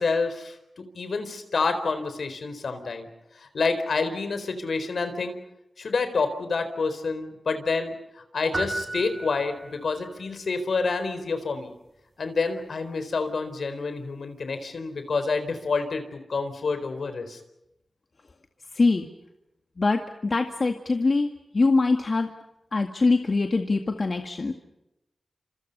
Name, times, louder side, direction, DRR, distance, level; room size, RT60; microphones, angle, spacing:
voice 1, 0.0-3.1 3.3-5.3 5.8-11.7 12.2-17.4, left 4 dB, 80° left, 9 dB, 4.2 m, -28 dB
sound 1, 8.5-10.0, right 2 dB, 45° right, 3.6 m, -33 dB
voice 2, 18.7-19.1 19.8-22.3 22.7-24.5, left 3 dB, 55° left, 5 dB, 2.0 m, -23 dB
29.5 x 27.0 x 5.5 m, 0.89 s
cardioid pair, 45°, 0 cm